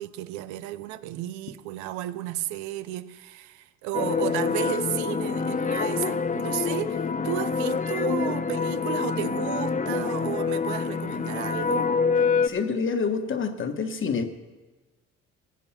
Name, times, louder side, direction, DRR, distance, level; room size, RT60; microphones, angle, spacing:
voice 1, 0.0-11.9, right 13 dB, 85° right, 0.6 m, -33 dB
sound 1, 3.9-12.5, left 5 dB, 25° left, 0.7 m, -26 dB
voice 2, 12.4-14.3, left 5 dB, 45° left, 1.3 m, -27 dB
15.5 x 8.2 x 5.8 m
supercardioid pair, 70°, 29 cm